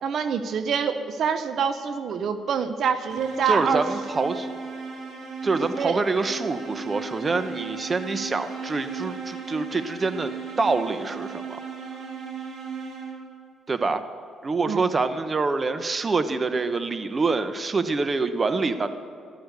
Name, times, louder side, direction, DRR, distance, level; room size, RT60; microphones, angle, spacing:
voice 1, 0.0-3.8 5.7-6.0 14.7-14.8, right 6 dB, 65° right, 10 dB, 0.8 m, -26 dB
sound 1, 3.1-13.4, right 5 dB, 80° right, 3.2 m, -36 dB
voice 2, 3.5-4.5 5.4-10.3 10.6-11.6 13.7-14.0 14.4-18.9, right 3 dB, 35° right, 10 dB, 0.9 m, -26 dB
14.5 x 12.5 x 6.7 m, 2.5 s
cardioid pair, 90°, 0 cm